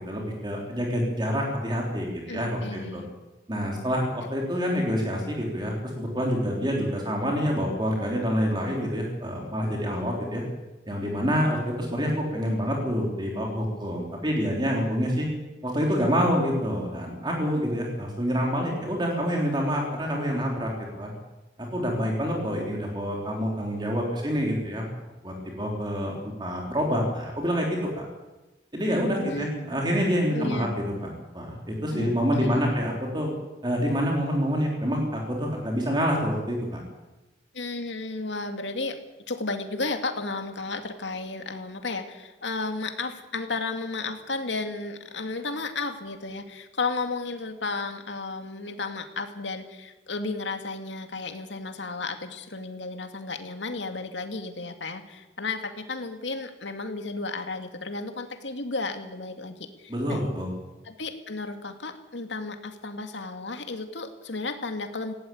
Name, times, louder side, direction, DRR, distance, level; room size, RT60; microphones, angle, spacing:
voice 1, 0.1-3.0 3.5-10.4 10.9-15.3 15.6-21.1 21.6-24.9 25.2-28.0 28.7-30.7 31.0-31.1 31.3-33.3 33.6-36.8 59.9-60.5, equal, 25° right, -1 dB, 3.5 m, -27 dB
voice 2, 2.3-3.1 29.2-29.8 30.3-30.7 31.9-32.1 32.4-32.7 37.5-39.0 39.3-60.2 60.8-65.1, left 3 dB, 85° left, 6 dB, 2.2 m, -33 dB
18.5 x 17.0 x 8.6 m, 1.1 s
head